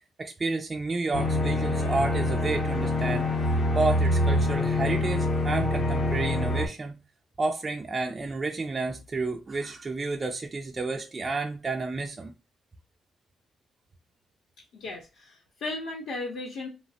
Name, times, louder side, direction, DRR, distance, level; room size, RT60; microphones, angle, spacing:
voice 1, 0.2-3.3 3.7-7.0 7.4-12.3, right 3 dB, 25° right, 0.3 m, -30 dB
sound 1, 1.1-6.7, left 1 dB, 40° left, 0.7 m, -25 dB
voice 2, 14.7-16.7, left 2 dB, 70° left, 0.8 m, -36 dB
3.0 x 2.0 x 2.7 m
cardioid pair, 140°, 0 cm